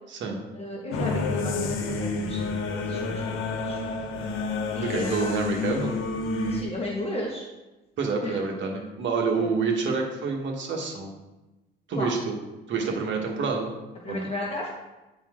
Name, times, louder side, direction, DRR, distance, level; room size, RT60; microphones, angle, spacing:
voice 1, 0.5-3.2 3.6-3.8 4.7-5.5 6.4-7.5 8.2-8.4 9.4-9.5 11.9-12.1 14.0-14.7, left 1 dB, 30° left, -3 dB, 1.5 m, -34 dB
sound 1, 0.9-6.6, left 3 dB, 85° left, 0.9 m, -29 dB
voice 2, 4.7-5.9 8.0-11.1 11.9-12.2 12.7-13.7 14.1-14.3, right 4 dB, 70° right, 1 dB, 1.5 m, -27 dB
9.7 x 4.3 x 3.7 m, 1.1 s
cardioid pair, 90°, 20 cm